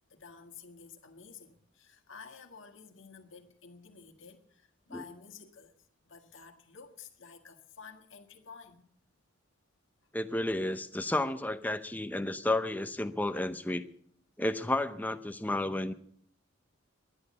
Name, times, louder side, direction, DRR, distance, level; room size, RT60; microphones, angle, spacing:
voice 1, 0.1-5.8 6.0-8.9, left 5 dB, 70° left, 1.7 m, -51 dB
voice 2, 10.1-13.9 14.4-15.9, left 1 dB, 10° left, 0.6 m, -32 dB
11.5 x 11.0 x 8.4 m
head